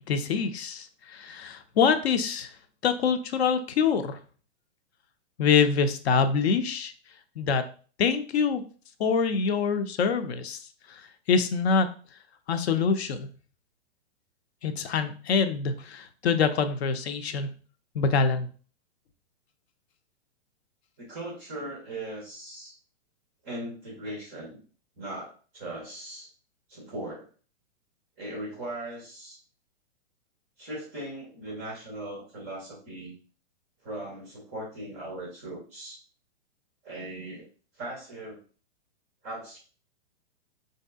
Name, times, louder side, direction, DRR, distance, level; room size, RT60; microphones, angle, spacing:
voice 1, 0.1-2.5 2.8-4.2 5.4-6.9 7.4-7.7 8.0-8.6 9.0-10.6 10.9-11.0 11.3-11.9 12.5-13.3 14.6-17.5 17.9-18.5, left 5 dB, 65° left, 9 dB, 0.5 m, -25 dB
voice 2, 21.0-22.7 23.4-24.6 25.0-26.3 26.7-27.3 28.2-29.4 30.6-33.1 33.8-36.0 36.8-37.5 37.7-38.4 39.2-39.6, right 1 dB, 15° right, -1 dB, 0.4 m, -39 dB
4.6 x 2.7 x 2.3 m, 0.40 s
hypercardioid pair, 155°, 35 cm